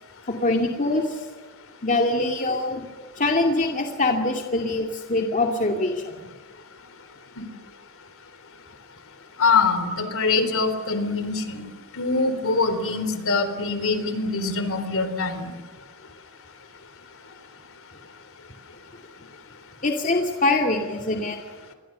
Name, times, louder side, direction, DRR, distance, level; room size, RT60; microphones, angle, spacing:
voice 1, 0.3-1.3 1.8-2.9 3.2-6.2 19.8-21.4, left 2 dB, 35° left, 2 dB, 2.4 m, -23 dB
voice 2, 9.4-11.6 12.0-15.5, left 4 dB, 65° left, 10 dB, 3.8 m, -24 dB
29.0 x 22.0 x 6.8 m, 1.3 s
head